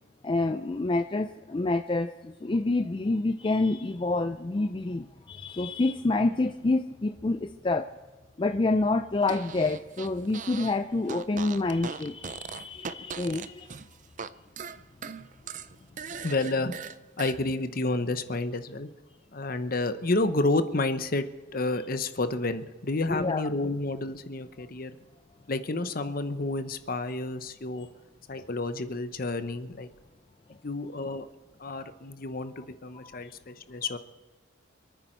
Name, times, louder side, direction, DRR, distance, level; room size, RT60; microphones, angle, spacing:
voice 1, 0.2-7.9 8.4-13.7 23.1-23.4 33.1-33.2, left 2 dB, 25° left, 7 dB, 0.4 m, -28 dB
Fart, 9.2-10.8 11.0-14.3 14.6-17.4, right 6 dB, 40° right, 0.5 m, -39 dB
voice 2, 16.2-16.8 17.2-18.9 19.3-21.3 21.5-25.0 25.5-27.9 28.3-29.9 30.6-31.3 31.6-34.0, left 2 dB, 50° left, 11 dB, 0.9 m, -30 dB
27.0 x 9.4 x 4.5 m, 1.3 s
head